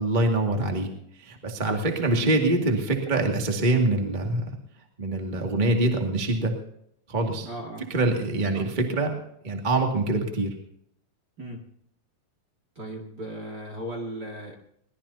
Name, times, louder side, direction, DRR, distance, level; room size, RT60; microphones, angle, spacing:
voice 1, 0.0-4.5 5.0-6.6 7.1-7.5 7.9-9.1 9.4-10.5, right 2 dB, 15° right, 1 dB, 1.7 m, -24 dB
voice 2, 7.4-7.9 8.5-8.6 11.4-11.7 12.8-14.5, right 1 dB, 35° right, 0 dB, 2.3 m, -37 dB
23.0 x 19.0 x 2.8 m, 0.74 s
omnidirectional pair, 3.9 m